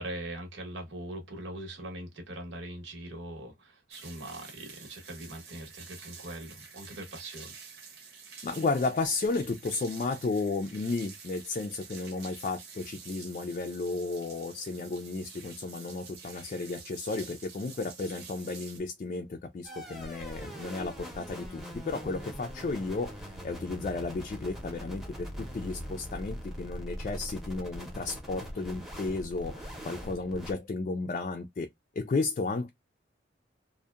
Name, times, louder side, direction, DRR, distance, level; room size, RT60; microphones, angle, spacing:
voice 1, 0.0-7.5, right 1 dB, 85° right, 1.0 m, -41 dB
sound 1, 3.9-18.8, right 5 dB, 60° right, 0.8 m, -49 dB
voice 2, 8.4-31.7 32.0-32.7, left 3 dB, 40° left, 0.3 m, -33 dB
sound 2, 19.6-30.5, equal, ahead, 0.6 m, -42 dB
2.7 x 2.1 x 2.3 m
head